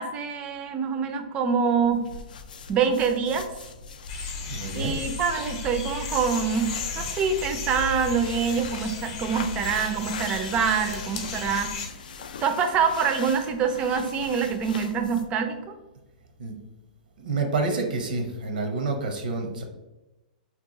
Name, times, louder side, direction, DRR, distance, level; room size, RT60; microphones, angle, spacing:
voice 1, 0.0-2.0 2.7-3.5 4.7-11.7 12.4-15.8, right 6 dB, 25° right, 7 dB, 0.4 m, -25 dB
sound 1, 1.8-15.4, left 5 dB, 80° left, 0.4 m, -42 dB
sound 2, 4.1-11.9, left 4 dB, 40° left, 0.6 m, -35 dB
voice 2, 4.4-5.0 16.4-16.6 17.2-19.6, right 3 dB, 80° right, 4 dB, 0.7 m, -28 dB
2.8 x 2.3 x 3.6 m, 1.0 s
hypercardioid pair, 145°, 5 cm